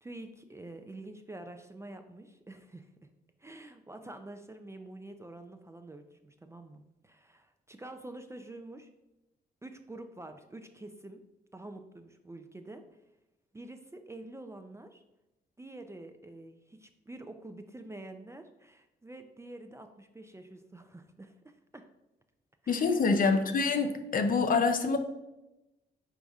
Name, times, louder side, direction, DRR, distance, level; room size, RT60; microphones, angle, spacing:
voice 1, 0.0-2.9 3.4-8.9 9.6-11.2 11.5-13.0 13.5-15.0 15.6-21.8 22.6-23.0 23.3-23.4, right 2 dB, 15° right, 7 dB, 0.3 m, -47 dB
voice 2, 22.7-25.0, left 4 dB, 50° left, 7 dB, 0.5 m, -26 dB
4.8 x 4.0 x 2.4 m, 0.98 s
cardioid pair, 70°, 19 cm